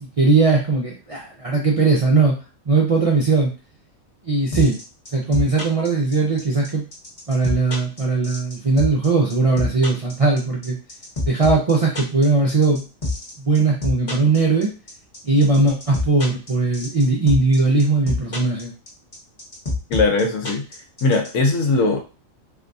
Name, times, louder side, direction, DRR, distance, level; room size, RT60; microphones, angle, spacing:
voice 1, 0.0-2.4 2.7-3.5 4.2-4.8 5.1-6.8 7.3-10.8 11.3-12.8 13.4-14.7 15.2-18.7, right 3 dB, 50° right, -3 dB, 0.4 m, -19 dB
sound 1, 4.5-21.3, left 2 dB, 30° left, 0.9 m, -26 dB
voice 2, 19.9-20.6 21.0-22.0, left 3 dB, 70° left, 3 dB, 1.1 m, -19 dB
3.4 x 2.7 x 2.6 m, 0.33 s
omnidirectional pair, 1.4 m